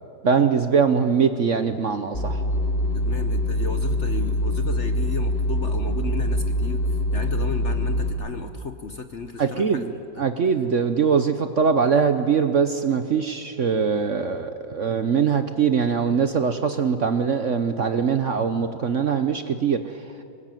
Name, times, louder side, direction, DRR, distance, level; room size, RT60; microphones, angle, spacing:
voice 1, 0.2-2.4 9.4-9.9 10.2-20.0, right 6 dB, 50° right, 9 dB, 1.0 m, -22 dB
sound 1, 2.1-8.1, left 1 dB, 30° left, 3.1 m, -24 dB
voice 2, 2.9-9.9 10.1-10.2, left 4 dB, 50° left, 8 dB, 1.0 m, -34 dB
23.5 x 20.0 x 9.1 m, 2.6 s
omnidirectional pair, 2.0 m